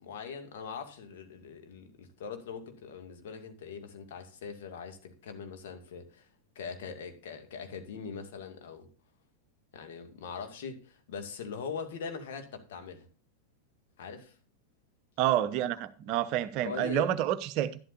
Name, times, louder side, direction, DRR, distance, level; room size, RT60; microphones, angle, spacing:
voice 1, 0.0-6.3 6.6-8.9 9.7-13.0 14.0-14.3 16.6-17.2, left 6 dB, 55° left, 2.2 m, -41 dB
voice 2, 15.2-17.8, right 12 dB, 40° right, 0.8 m, -28 dB
12.0 x 11.5 x 2.6 m
figure-of-eight pair, 90°, 0 cm